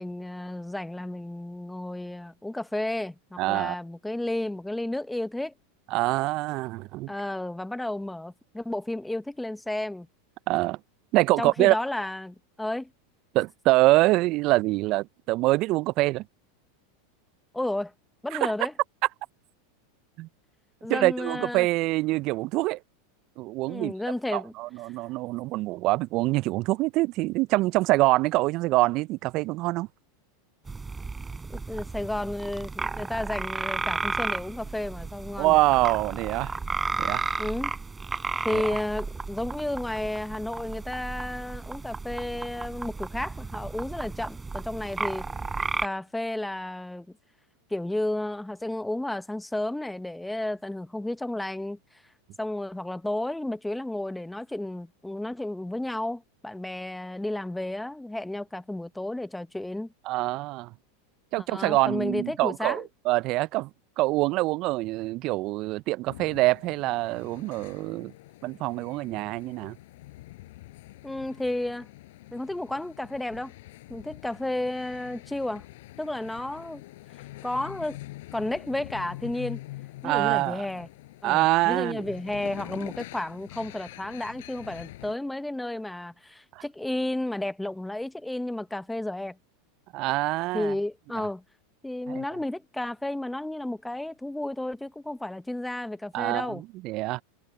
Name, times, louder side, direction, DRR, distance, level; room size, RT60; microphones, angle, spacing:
voice 1, 0.0-5.5 7.1-10.1 11.4-12.9 17.5-17.9 18.2-18.7 20.8-21.7 23.7-24.5 31.5-35.6 37.4-37.7 38.4-45.3 45.8-47.1 47.7-51.8 52.4-59.9 61.4-62.9 71.0-71.9 72.3-73.5 73.9-75.6 76.0-76.8 77.4-78.0 78.3-79.6 80.0-80.9 81.2-89.4 90.5-91.4 91.8-96.6, left 1 dB, 5° left, 1.0 m, -32 dB
voice 2, 3.4-3.7 5.9-7.1 10.5-10.8 11.1-11.8 13.3-16.2 18.3-18.5 20.2-20.3 20.9-22.8 23.4-23.9 24.3-29.9 35.4-36.5 37.0-37.2 38.5-38.6 60.1-60.7 61.3-63.7 64.0-68.1 68.4-69.8 80.0-80.6 81.2-82.0 86.5-86.6 89.9-90.7 91.2-91.3 92.1-92.2 96.1-97.2, right 19 dB, 45° right, 0.8 m, -25 dB
sound 1, 30.7-45.9, right 4 dB, 15° right, 4.5 m, -33 dB
sound 2, 66.1-85.2, left 17 dB, 65° left, 7.0 m, -45 dB
figure-of-eight pair, 90°, 0 cm